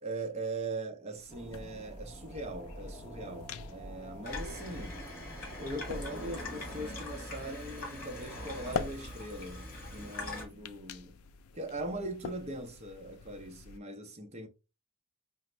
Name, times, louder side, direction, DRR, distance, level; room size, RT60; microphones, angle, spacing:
voice 1, 0.0-5.0 5.6-11.2 11.5-14.5, right 2 dB, 30° right, 0.6 m, -40 dB
sound 1, 1.2-13.8, left 6 dB, 85° left, 0.4 m, -46 dB
sound 2, 1.3-6.4, right 1 dB, 20° left, 0.8 m, -45 dB
Water tap faucet / Sink (filling or washing), 4.2-10.4, left 2 dB, 45° left, 1.5 m, -42 dB
5.0 x 2.0 x 3.2 m
head